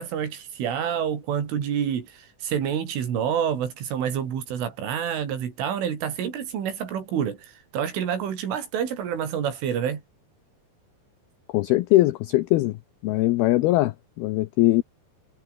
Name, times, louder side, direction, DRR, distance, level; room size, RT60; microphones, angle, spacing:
voice 1, 0.0-7.4 7.7-10.0, right 8 dB, 90° right, 6.2 m, -28 dB
voice 2, 11.5-12.8 13.0-14.8, left 17 dB, 85° left, 2.2 m, -21 dB
omnidirectional pair, 5.5 m